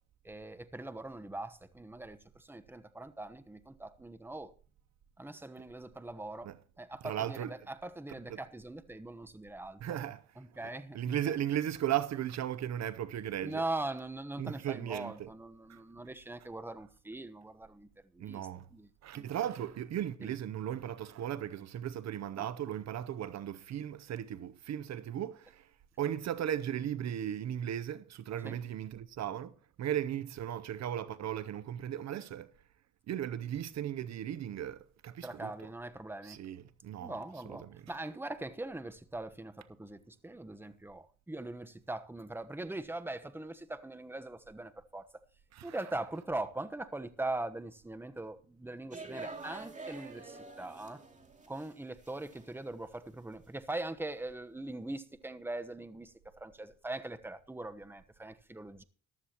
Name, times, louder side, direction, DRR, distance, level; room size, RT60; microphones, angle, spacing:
voice 1, 0.2-4.5 5.2-10.0 10.4-11.4 13.4-18.4 18.7-18.9 19.1-19.3 20.2-20.3 22.4-22.5 28.4-28.6 35.2-36.4 37.0-45.1 45.6-51.0 51.5-58.8, right 2 dB, 5° right, 1.0 m, -41 dB
voice 2, 7.0-7.5 8.3-8.4 9.8-10.2 10.6-13.6 14.4-15.3 15.7-15.8 18.2-18.7 19.0-25.7 26.0-32.5 33.1-35.5 36.2-37.2 37.5-37.9 45.5-45.8, right 10 dB, 60° right, 0.7 m, -36 dB
sound 1, 48.9-51.7 52.0-52.7, right 3 dB, 25° right, 2.6 m, -46 dB
14.5 x 12.0 x 2.9 m
cardioid pair, 90°, 30 cm